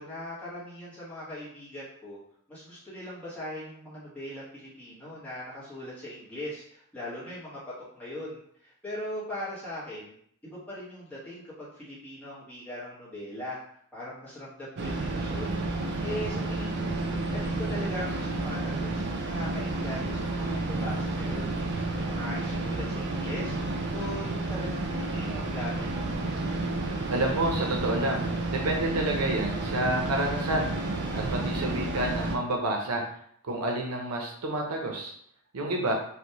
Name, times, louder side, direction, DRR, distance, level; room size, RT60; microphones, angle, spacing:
voice 1, 0.0-2.2 2.5-7.6 7.9-10.1 10.4-13.6 13.9-17.0 17.3-21.5 21.9-25.9, left 1 dB, 5° left, -10 dB, 1.2 m, -40 dB
sound 1, 14.8-32.4, right 2 dB, 50° right, 0.4 m, -31 dB
voice 2, 27.1-33.0 33.4-35.1 35.5-35.9, right 1 dB, 90° right, 1 dB, 0.7 m, -29 dB
3.4 x 2.6 x 2.8 m, 0.65 s
head